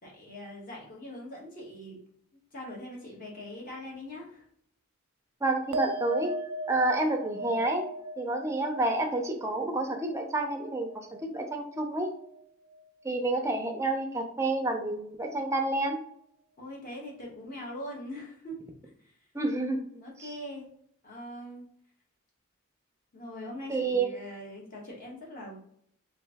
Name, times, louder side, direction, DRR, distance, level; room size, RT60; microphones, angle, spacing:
voice 1, 0.0-2.0 2.5-4.4 16.6-18.6 20.0-20.7 21.0-21.6 23.1-25.6, left 1 dB, 40° left, -3 dB, 1.1 m, -42 dB
voice 2, 5.4-6.3 6.7-7.9 8.2-12.1 13.0-16.0 19.3-19.9 20.2-20.3 23.7-24.1, right 2 dB, 15° right, 3 dB, 0.5 m, -29 dB
sound 1, 5.7-12.4 12.7-13.3, right 1 dB, 75° right, 0.3 m, -39 dB
3.0 x 2.5 x 3.4 m, 0.69 s
head